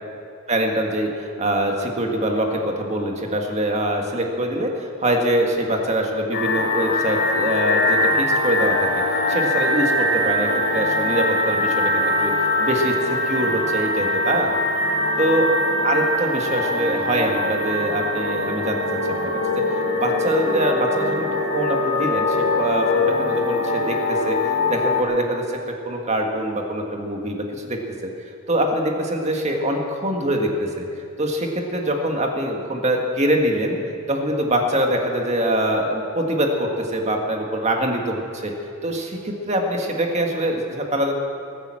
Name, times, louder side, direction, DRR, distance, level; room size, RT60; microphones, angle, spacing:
voice 1, 0.5-9.0 9.3-14.5 15.2-15.5 15.8-18.8 19.1-21.3 21.5-24.4 24.7-25.6 25.8-28.1 28.5-30.9 31.2-33.8 34.1-38.5 38.8-41.1, right 1 dB, 30° right, 2 dB, 1.7 m, -24 dB
sound 1, 6.3-25.0, left 2 dB, 50° left, 2.8 m, -22 dB
19.5 x 9.0 x 7.6 m, 2.6 s
head